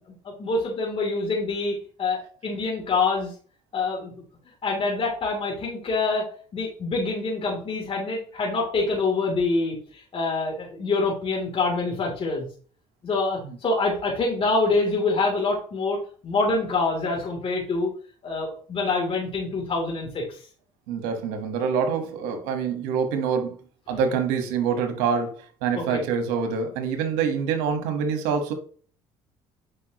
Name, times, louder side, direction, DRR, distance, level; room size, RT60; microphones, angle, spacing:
voice 1, 0.4-3.3 3.7-4.1 4.6-6.3 6.5-12.4 13.0-16.0 16.2-17.9 18.2-20.2 23.9-24.0 25.7-26.0, left 3 dB, 45° left, 3.0 m, -26 dB
voice 2, 20.9-23.6 23.9-28.5, right 6 dB, 85° right, 1.5 m, -26 dB
8.5 x 5.4 x 3.0 m
supercardioid pair, 75°, 13 cm